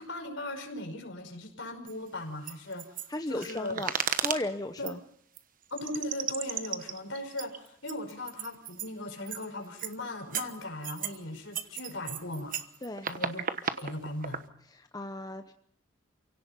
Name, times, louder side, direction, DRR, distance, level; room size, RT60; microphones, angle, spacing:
voice 1, 0.0-3.8 4.8-4.9 5.7-12.6 13.1-14.4, left 1 dB, 65° left, 4 dB, 5.2 m, -38 dB
sound 1, 1.9-2.0 2.5-4.4 4.9-5.0 5.4-5.5 5.8-8.9 9.3-9.5 9.8-10.0 10.3-11.2 11.5-14.4, right 7 dB, 45° right, 1.1 m, -35 dB
voice 2, 3.1-3.9 4.2-5.0 12.8-13.1 14.8-15.5, left 1 dB, 20° left, 7 dB, 0.8 m, -35 dB
28.5 x 17.5 x 5.4 m, 0.64 s
head